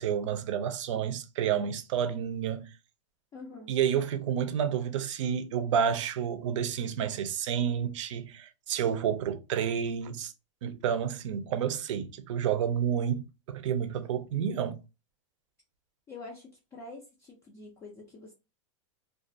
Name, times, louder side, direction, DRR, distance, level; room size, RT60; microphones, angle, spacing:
voice 1, 0.0-2.7 3.7-10.3 10.6-14.8, right 8 dB, 70° right, 0.5 m, -30 dB
voice 2, 3.3-3.8 14.3-14.4 16.1-18.3, left 3 dB, 15° left, 0.4 m, -46 dB
2.4 x 2.3 x 2.5 m
supercardioid pair, 155°, 17 cm